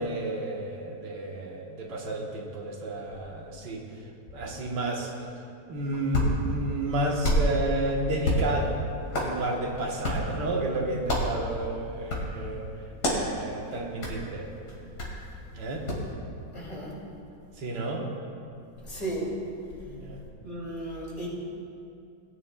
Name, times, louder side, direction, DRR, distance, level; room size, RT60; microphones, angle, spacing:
voice 1, 0.0-3.9 4.3-5.3 5.6-8.8 9.1-12.7 13.0-14.5 15.5-15.8 17.6-18.1 19.8-20.2, right 2 dB, 80° right, 0 dB, 1.7 m, -31 dB
Hands, 5.7-16.1, equal, 85° left, 2.8 m, -31 dB
voice 2, 16.5-17.0 18.8-19.3 20.4-21.3, right 1 dB, 50° left, -4 dB, 2.8 m, -34 dB
19.0 x 9.6 x 2.2 m, 2.5 s
omnidirectional pair, 1.9 m